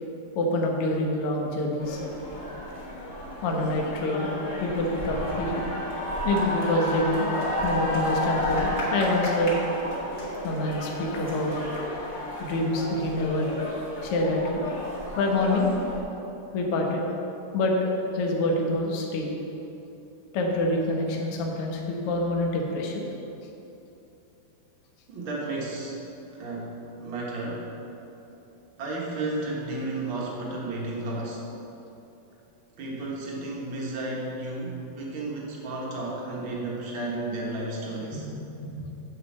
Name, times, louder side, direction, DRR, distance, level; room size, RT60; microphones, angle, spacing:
voice 1, 0.3-2.0 3.4-4.3 4.6-5.6 6.2-7.3 7.6-9.6 10.4-11.8 12.4-13.5 14.0-14.6 15.2-15.7 16.5-17.0 17.5-19.3 20.3-23.0 38.1-38.3 38.6-38.9, left 1 dB, 75° left, 0 dB, 1.3 m, -26 dB
sound 1, 1.8-16.0, left 1 dB, 35° left, 1.8 m, -32 dB
voice 2, 25.1-26.0 26.3-27.7 28.8-31.4 32.8-38.3, right 2 dB, 70° right, -3 dB, 1.2 m, -33 dB
9.7 x 5.0 x 7.3 m, 2.9 s
omnidirectional pair, 4.3 m